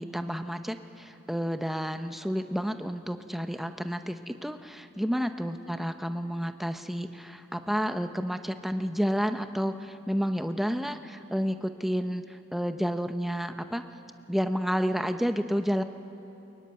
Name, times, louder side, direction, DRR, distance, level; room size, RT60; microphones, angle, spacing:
voice 1, 0.0-13.8 14.3-15.8, equal, ahead, 7 dB, 0.8 m, -30 dB
22.5 x 21.5 x 9.7 m, 3.0 s
head